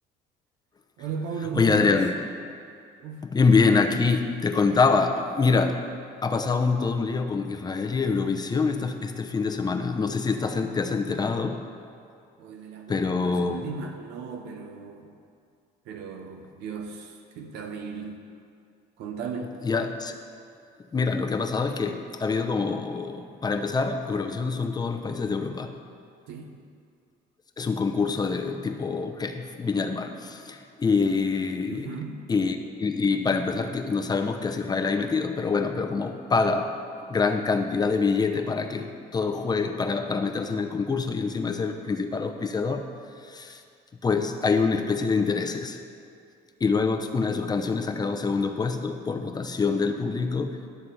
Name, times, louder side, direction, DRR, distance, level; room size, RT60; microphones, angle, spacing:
voice 1, 1.0-2.1 3.0-3.3 12.4-15.2 15.8-18.2 19.0-19.6 26.3-26.6 31.7-32.3, right 5 dB, 85° right, 4 dB, 0.8 m, -36 dB
voice 2, 1.5-2.1 3.2-5.8 6.2-11.6 12.9-13.7 19.6-20.1 20.9-25.7 27.6-32.0 32.3-36.7 37.1-42.8 43.2-43.6 44.0-45.8 46.6-50.6, left 4 dB, 25° left, 6 dB, 0.7 m, -25 dB
11.5 x 4.2 x 7.8 m, 2.3 s
cardioid pair, 110°, 17 cm